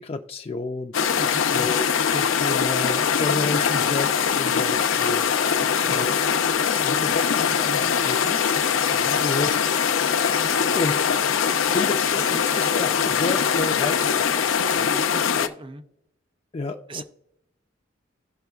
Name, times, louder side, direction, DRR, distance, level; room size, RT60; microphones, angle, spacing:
voice 1, 0.0-1.1 1.5-6.1 6.8-8.5 9.2-9.5 10.6-11.0 11.3-15.0 16.5-17.0, left 3 dB, 30° left, 5 dB, 0.4 m, -31 dB
sound 1, 0.9-15.5, left 7 dB, 80° left, 0.6 m, -22 dB
voice 2, 5.6-6.1 8.9-9.2 14.9-15.8 16.9-17.0, right 1 dB, 25° right, 10 dB, 0.5 m, -38 dB
17.0 x 5.7 x 2.3 m, 0.81 s
head